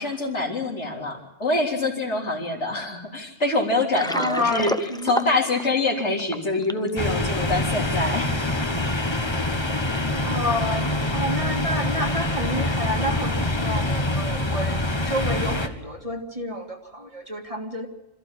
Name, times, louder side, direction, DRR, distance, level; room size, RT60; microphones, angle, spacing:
voice 1, 0.0-4.7 5.1-8.3, left 2 dB, 70° left, 0 dB, 4.0 m, -25 dB
Water, 3.7-6.9, left 1 dB, 5° left, 0.4 m, -31 dB
voice 2, 4.1-5.1 9.9-17.9, left 1 dB, 30° right, 3 dB, 2.1 m, -29 dB
sound 1, 7.0-15.7, left 1 dB, 25° left, 1.4 m, -25 dB
26.5 x 14.5 x 8.6 m, 1.0 s
omnidirectional pair, 1.2 m